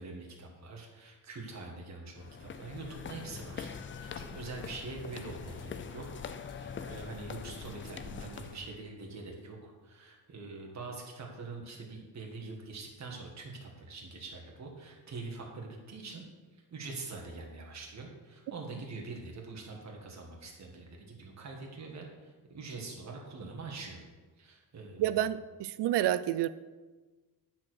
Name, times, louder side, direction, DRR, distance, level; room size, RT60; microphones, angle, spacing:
voice 1, 0.0-16.2 16.5-24.0 24.4-25.2, right 3 dB, 40° right, 0 dB, 1.6 m, -44 dB
sound 1, 2.2-8.7, left 6 dB, 30° left, 0.4 m, -43 dB
sound 2, 3.2-8.8, left 4 dB, 50° left, 1.0 m, -53 dB
voice 2, 25.0-26.5, right 12 dB, 75° right, 15 dB, 0.5 m, -29 dB
8.8 x 4.5 x 6.3 m, 1.3 s
wide cardioid pair, 135°, 41 cm